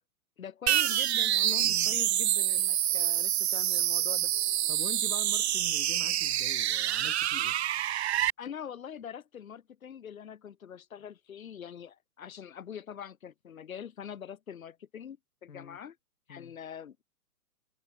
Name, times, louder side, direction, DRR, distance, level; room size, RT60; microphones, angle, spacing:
voice 1, 0.4-4.3 8.4-16.0 16.3-17.0, left 8 dB, 60° left, 4.0 m, -44 dB
sound 1, 0.7-8.3, right 12 dB, 45° right, 0.5 m, -27 dB
voice 2, 1.6-2.0 4.7-7.6 15.5-15.8 16.3-16.5, left 6 dB, 75° left, 1.3 m, -45 dB
figure-of-eight pair, 115°, 46 cm